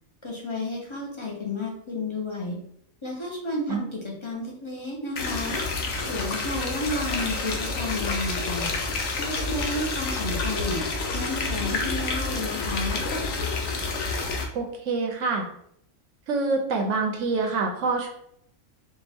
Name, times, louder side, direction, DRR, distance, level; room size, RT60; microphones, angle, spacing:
voice 1, 0.2-2.6 3.0-5.6 6.0-8.7 9.3-10.8 11.1-13.0, left 2 dB, 30° left, -1 dB, 0.5 m, -32 dB
sound 1, 5.2-14.4, left 3 dB, 75° left, 1.1 m, -29 dB
voice 2, 14.5-15.5 16.3-18.1, right 3 dB, 70° right, 3 dB, 0.9 m, -26 dB
4.4 x 2.3 x 3.4 m, 0.71 s
omnidirectional pair, 1.5 m